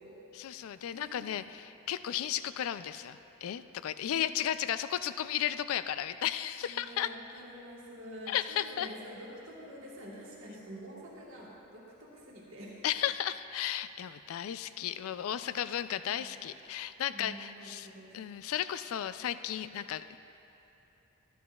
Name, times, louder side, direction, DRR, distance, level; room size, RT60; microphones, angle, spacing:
voice 1, 0.3-7.1 8.3-8.9 12.8-17.9 18.1-20.2, left 10 dB, 70° left, 13 dB, 0.3 m, -34 dB
voice 2, 0.9-1.4 4.1-4.2 6.6-12.8 16.1-16.3 17.1-18.2, equal, 65° right, -6 dB, 1.5 m, -47 dB
13.5 x 10.5 x 2.3 m, 3.0 s
head